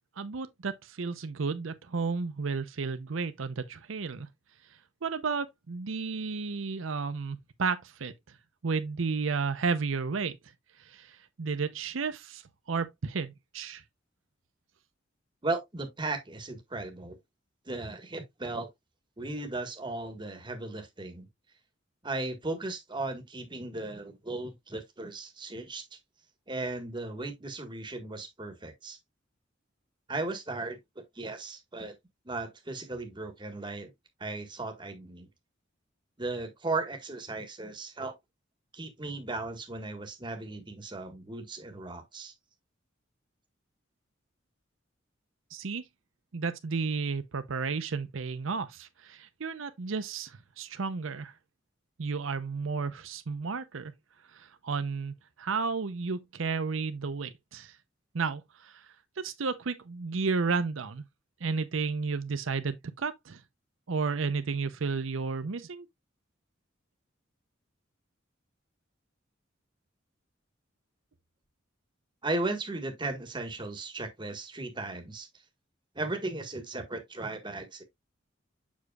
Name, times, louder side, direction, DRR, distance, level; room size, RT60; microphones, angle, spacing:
voice 1, 0.2-4.3 5.0-8.1 8.6-10.4 10.8-12.4 12.7-13.8 45.5-45.8 46.3-51.3 52.0-53.9 54.3-57.8 58.1-61.0 61.4-63.4 63.9-65.9, right 4 dB, 80° right, 0.7 m, -32 dB
voice 2, 15.4-17.2 17.7-18.7 19.2-21.3 22.0-25.8 26.5-29.0 30.1-31.9 32.2-33.9 34.2-35.3 36.2-38.1 38.7-42.3 72.2-75.3 75.9-77.8, right 2 dB, 25° right, 1.5 m, -36 dB
7.3 x 6.4 x 2.3 m
head